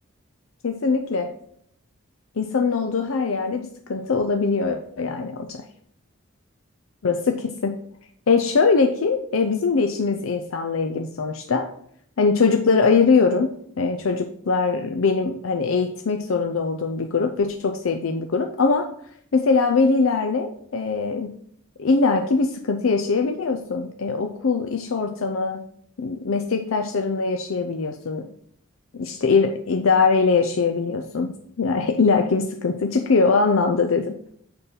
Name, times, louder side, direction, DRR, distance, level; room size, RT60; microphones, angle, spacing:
voice 1, 0.6-1.3 2.4-5.7 7.0-7.8 8.3-11.7 12.2-18.9 19.3-21.3 21.8-25.6 26.0-28.3 28.9-34.2, left 4 dB, 80° left, 6 dB, 0.6 m, -22 dB
6.7 x 5.3 x 5.7 m, 0.67 s
head